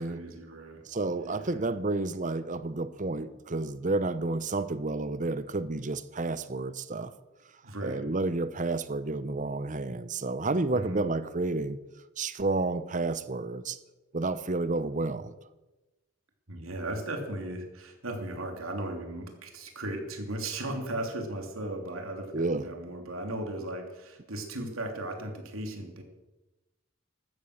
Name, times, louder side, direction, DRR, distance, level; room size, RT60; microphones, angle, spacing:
voice 1, 0.0-1.7 7.6-8.1 10.7-11.1 16.5-26.0, right 1 dB, 85° right, 4 dB, 3.0 m, -37 dB
voice 2, 0.9-7.1 7.8-11.8 12.2-13.8 14.1-15.3 22.3-22.7, right 2 dB, 40° right, 13 dB, 0.8 m, -30 dB
15.0 x 13.0 x 6.6 m, 1.1 s
head